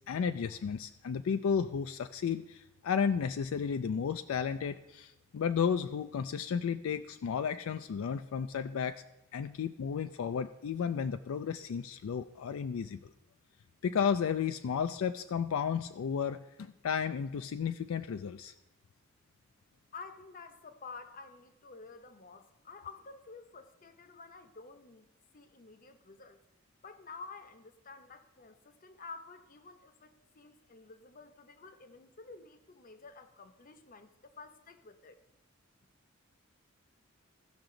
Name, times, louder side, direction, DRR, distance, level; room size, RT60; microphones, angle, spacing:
voice 1, 0.1-9.0 9.3-13.1 13.8-18.5, left 7 dB, 70° left, 9 dB, 0.4 m, -33 dB
voice 2, 19.9-25.1 25.3-26.4 26.8-35.2, left 4 dB, 40° left, 9 dB, 0.7 m, -50 dB
16.0 x 5.9 x 3.8 m, 0.92 s
head